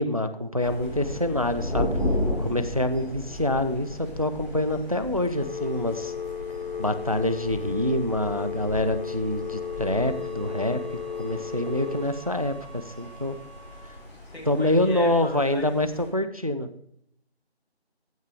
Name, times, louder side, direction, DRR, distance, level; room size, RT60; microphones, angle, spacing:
voice 1, 0.0-2.0 2.4-6.1 6.8-13.4 14.5-16.7, left 1 dB, 35° right, 11 dB, 0.5 m, -26 dB
Thunder, 0.6-16.1, left 1 dB, 15° left, 4.0 m, -35 dB
Telephone, 5.3-12.1, left 7 dB, 45° left, 1.1 m, -34 dB
sound 1, 9.4-14.1, right 3 dB, 10° right, 2.2 m, -49 dB
voice 2, 14.3-15.7, left 1 dB, 70° left, -1 dB, 4.6 m, -37 dB
15.0 x 6.3 x 3.4 m, 0.72 s
figure-of-eight pair, 165°, 33 cm